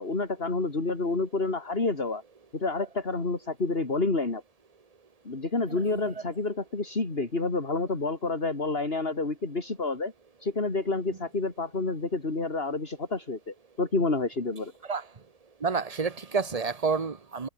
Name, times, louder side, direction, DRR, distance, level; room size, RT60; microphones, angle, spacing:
voice 1, 0.0-2.2 2.5-4.4 5.2-10.1 10.4-14.7, left 3 dB, 45° left, 3.3 m, -29 dB
voice 2, 5.7-6.1 14.9-15.0 15.6-17.5, right 5 dB, 30° right, 1.1 m, -29 dB
omnidirectional pair, 1.4 m